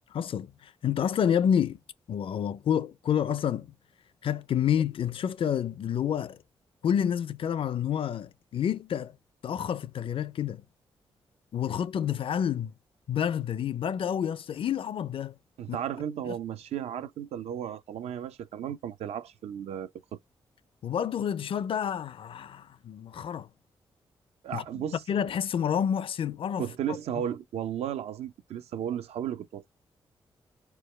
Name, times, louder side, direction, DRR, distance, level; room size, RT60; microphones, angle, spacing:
voice 1, 0.1-1.8 2.1-3.7 4.2-6.4 6.8-9.2 9.4-10.6 11.5-12.7 13.1-15.4 15.7-15.8 16.3-16.4 20.8-23.5 24.5-24.6 25.1-27.0, left 9 dB, 60° left, 0.5 m, -29 dB
voice 2, 15.6-19.9 24.4-25.0 26.6-29.7, right 9 dB, 80° right, 0.5 m, -34 dB
4.7 x 2.2 x 3.1 m
supercardioid pair, 55°, 10 cm